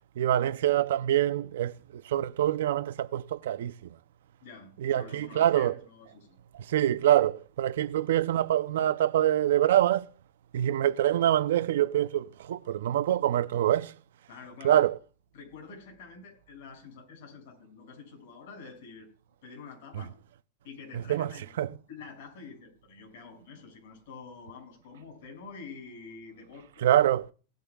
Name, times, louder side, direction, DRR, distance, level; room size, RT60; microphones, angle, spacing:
voice 1, 0.2-3.7 4.8-5.7 6.7-10.1 10.5-13.9 14.6-14.9 20.9-21.3 21.6-21.7 26.8-27.3, right 12 dB, 80° right, 0.6 m, -25 dB
voice 2, 4.4-6.4 14.3-14.8 15.3-19.1 19.4-20.1 20.6-26.9, left 4 dB, 55° left, 6.4 m, -47 dB
18.5 x 10.0 x 2.4 m
supercardioid pair, 175°, 0 cm